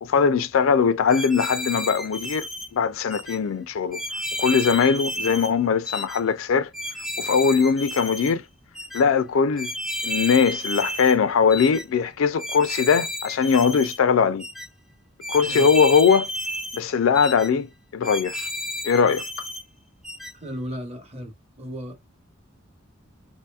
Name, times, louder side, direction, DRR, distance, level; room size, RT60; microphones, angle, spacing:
voice 1, 0.0-4.0 4.4-6.7 7.2-8.4 8.9-9.7 10.0-14.4 15.3-16.3 16.7-17.7 17.9-18.5 18.8-19.2, left 6 dB, 85° left, 0.4 m, -20 dB
sound 1, 1.1-2.7 3.1-3.4 3.9-5.5 5.9-6.2 6.7-8.3 8.7-9.0 9.6-11.2 11.5-11.8 12.4-14.0 14.4-14.7 15.2-16.8 17.1-17.5 18.0-19.6 20.0-20.3, left 1 dB, ahead, 0.5 m, -32 dB
voice 2, 20.3-22.2, equal, 30° right, 0.9 m, -36 dB
2.8 x 2.6 x 2.3 m
head